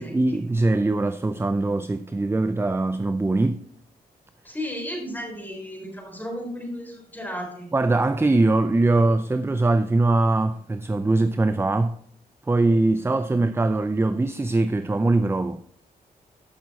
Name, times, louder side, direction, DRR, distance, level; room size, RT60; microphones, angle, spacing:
voice 1, 0.0-3.6 7.7-12.0 12.5-15.6, right 2 dB, 15° right, 0.5 m, -22 dB
voice 2, 4.4-7.7, equal, 10° left, 3.7 m, -34 dB
14.0 x 5.9 x 4.2 m
cardioid pair, 80°, 16 cm